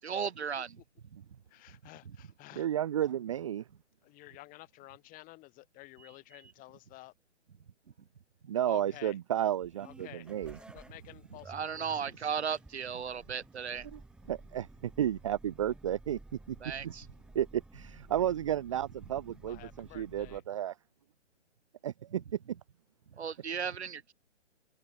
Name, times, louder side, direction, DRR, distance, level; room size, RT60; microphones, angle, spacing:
voice 1, 0.0-0.8 11.5-13.9 16.6-17.1 23.2-24.1, right 7 dB, 60° right, 1.4 m, -35 dB
voice 2, 1.5-2.7 4.0-7.1 8.6-9.2 9.8-12.3 19.4-20.4, left 19 dB, 20° left, 6.5 m, -52 dB
voice 3, 2.6-3.6 8.5-10.6 13.9-14.0 14.3-16.2 16.5-16.6 17.3-20.7 21.8-22.4, right 11 dB, 25° right, 0.5 m, -32 dB
sound 1, 9.5-20.4, right 2 dB, ahead, 1.8 m, -54 dB
open air
figure-of-eight pair, 130°, 36 cm